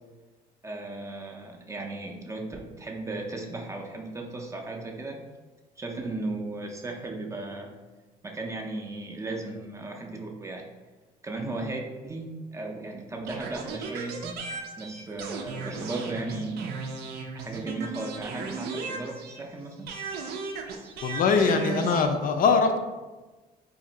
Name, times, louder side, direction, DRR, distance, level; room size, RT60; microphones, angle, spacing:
voice 1, 0.6-5.2 5.8-7.7 8.2-10.7 11.2-14.3 14.8-16.8 17.3-20.0, right 2 dB, 15° right, 2 dB, 0.4 m, -36 dB
sound 1, 13.3-19.5 19.9-22.1, right 4 dB, 70° right, 0.5 m, -36 dB
voice 2, 21.0-22.8, left 5 dB, 55° left, 6 dB, 0.4 m, -22 dB
2.8 x 2.5 x 4.0 m, 1.2 s
cardioid pair, 110°, 17 cm